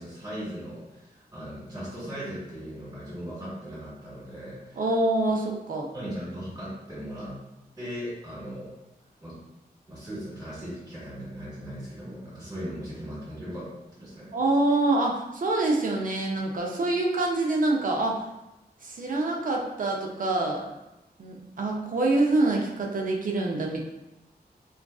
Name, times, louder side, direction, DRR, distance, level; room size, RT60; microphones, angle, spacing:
voice 1, 0.0-4.9 5.9-7.4 7.8-8.7 9.2-9.4 9.9-13.7 14.0-14.3, equal, 25° right, -11 dB, 1.2 m, -38 dB
voice 2, 4.8-5.9 14.3-18.2 18.8-20.6 21.2-23.8, right 2 dB, 55° right, 0 dB, 0.5 m, -25 dB
2.4 x 2.3 x 2.3 m, 0.94 s
wide cardioid pair, 115°, 17 cm